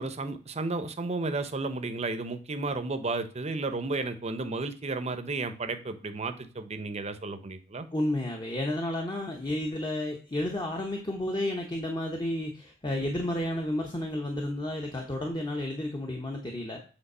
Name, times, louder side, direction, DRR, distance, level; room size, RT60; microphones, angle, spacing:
voice 1, 0.0-7.9, right 3 dB, 35° right, 10 dB, 0.8 m, -33 dB
voice 2, 7.9-16.8, left 1 dB, 25° left, 2 dB, 0.9 m, -31 dB
8.2 x 3.5 x 5.5 m, 0.38 s
head